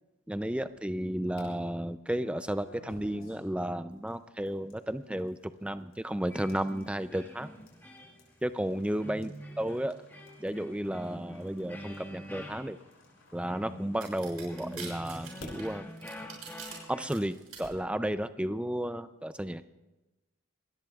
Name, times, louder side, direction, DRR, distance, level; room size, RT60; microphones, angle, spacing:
voice 1, 0.3-7.5 8.4-9.3 9.6-10.0 10.4-12.8 13.3-15.9 16.9-19.7, right 1 dB, 5° right, 11 dB, 0.4 m, -33 dB
sound 1, 0.5-1.4 2.2-14.2 14.8-17.9, left 2 dB, 75° left, 5.9 m, -57 dB
sound 2, 6.3-17.1, equal, 10° left, 1.7 m, -46 dB
sound 3, 14.0-16.7 17.1-17.6, right 8 dB, 85° right, 6.5 m, -44 dB
27.0 x 20.5 x 2.4 m, 1.1 s
head